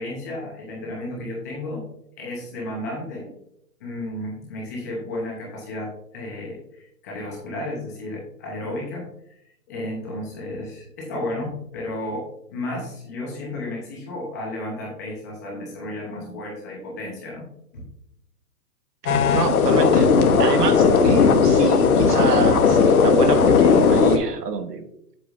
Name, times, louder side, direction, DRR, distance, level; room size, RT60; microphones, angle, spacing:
voice 1, 0.0-1.8 2.2-3.3 3.8-9.1 9.7-17.4 17.7-17.9, left 1 dB, 10° left, -3 dB, 0.8 m, -33 dB
sound 1, 19.1-24.2, left 5 dB, 65° left, 1.1 m, -16 dB
voice 2, 19.3-20.1 20.4-24.9, right 6 dB, 85° right, 8 dB, 1.3 m, -27 dB
8.0 x 7.0 x 2.5 m, 0.75 s
hypercardioid pair, 170°, 46 cm